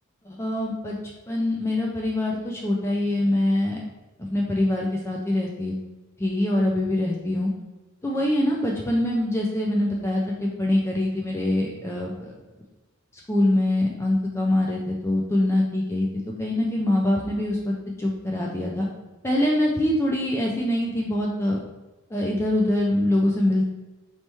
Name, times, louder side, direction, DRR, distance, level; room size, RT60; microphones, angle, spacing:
voice 1, 0.2-1.0 1.3-3.8 4.2-5.8 6.2-7.5 8.0-12.3 13.3-18.9 19.2-21.6 22.1-23.6, left 1 dB, 10° left, -2 dB, 0.3 m, -24 dB
4.1 x 3.0 x 3.4 m, 1.1 s
head